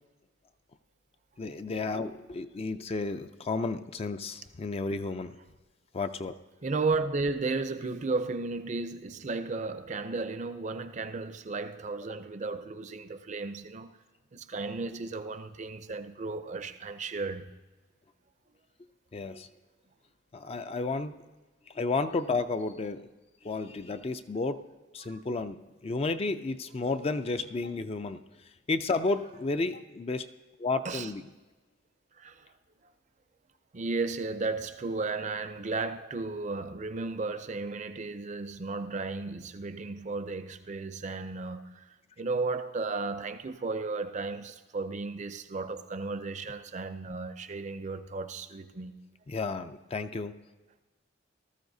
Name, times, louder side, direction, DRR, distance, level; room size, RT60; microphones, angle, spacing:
voice 1, 1.4-5.4 5.9-6.4 19.1-19.5 20.3-21.2 21.7-23.1 23.4-24.6 24.9-28.2 28.7-30.3 30.6-31.3 49.3-50.3, left 3 dB, 30° left, 0.3 m, -32 dB
voice 2, 6.6-13.9 14.3-17.5 25.1-25.2 30.8-31.1 32.2-32.5 33.7-41.9 42.2-49.0, right 3 dB, 35° right, 0.5 m, -34 dB
19.0 x 13.5 x 2.7 m
head